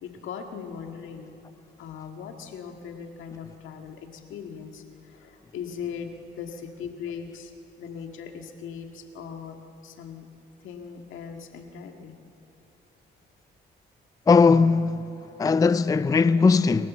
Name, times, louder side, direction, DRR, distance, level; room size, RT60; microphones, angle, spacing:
voice 1, 0.0-1.3 1.8-7.5 7.8-9.6 9.8-10.3 10.6-12.2, left 7 dB, 80° left, 1.8 m, -39 dB
voice 2, 14.3-16.9, left 4 dB, 20° left, 0.4 m, -19 dB
28.5 x 14.0 x 7.2 m
cardioid pair, 90°, 20 cm